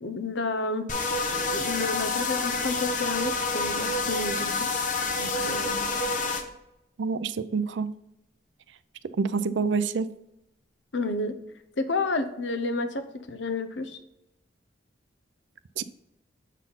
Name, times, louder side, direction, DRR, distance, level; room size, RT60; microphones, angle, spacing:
voice 1, 0.0-0.9 1.3-4.7 5.2-5.9 10.9-11.3 11.8-14.0, left 3 dB, 75° left, 9 dB, 0.8 m, -31 dB
sound 1, 0.9-6.4, left 3 dB, 40° left, 0.8 m, -28 dB
voice 2, 7.0-7.9 9.2-10.1 15.8-15.9, right 5 dB, 75° right, 13 dB, 0.4 m, -27 dB
7.3 x 4.1 x 5.4 m, 0.87 s
head